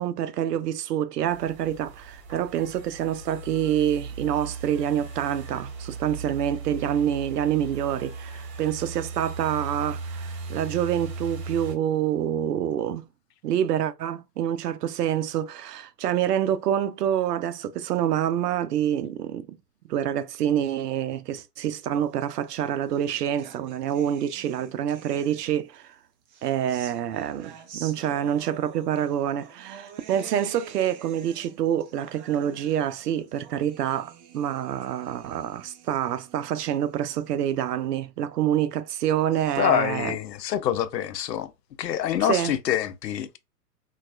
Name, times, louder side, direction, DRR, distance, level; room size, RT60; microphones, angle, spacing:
voice 1, 0.0-13.1 13.4-19.6 19.9-25.9 26.4-40.2 42.2-42.5, right 10 dB, 75° right, 0.6 m, -27 dB
sound 1, 1.3-11.8, right 4 dB, 55° right, 1.2 m, -37 dB
sound 2, 22.3-25.8 26.2-37.7, right 7 dB, 30° right, 0.5 m, -48 dB
voice 2, 39.6-41.5 41.8-43.4, left 10 dB, 85° left, 0.6 m, -26 dB
4.0 x 2.3 x 2.2 m
hypercardioid pair, 125°, 48 cm